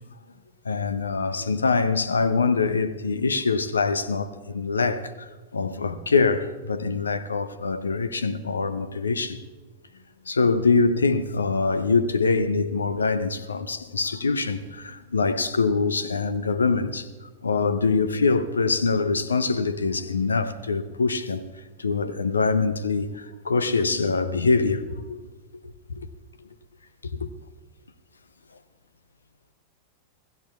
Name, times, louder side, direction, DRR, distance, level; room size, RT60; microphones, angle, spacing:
voice 1, 0.6-5.3 5.5-9.4 10.3-17.1 17.4-21.4 21.8-25.2 25.9-26.1 27.2-27.3, left 4 dB, 75° left, 0.7 m, -24 dB
26.5 x 16.0 x 2.4 m
figure-of-eight pair, 90°, 0 cm